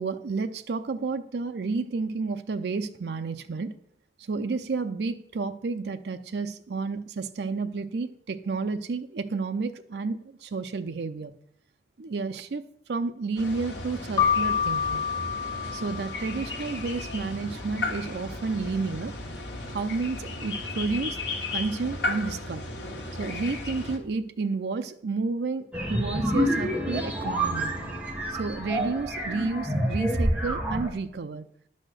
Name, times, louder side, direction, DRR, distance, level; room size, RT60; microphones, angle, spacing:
voice 1, 0.0-3.8 4.2-11.3 12.0-12.6 12.9-15.0 15.7-19.1 19.7-21.2 21.5-22.6 23.2-27.7 28.3-31.4, right 4 dB, 70° right, 8 dB, 0.5 m, -31 dB
sound 1, 13.4-24.0, left 2 dB, 85° left, 1.5 m, -35 dB
Keyboard (musical), 14.2-16.7, left 7 dB, 20° left, 0.6 m, -27 dB
sound 2, 25.7-30.9, equal, 5° right, 1.2 m, -28 dB
10.5 x 4.2 x 6.5 m, 0.69 s
head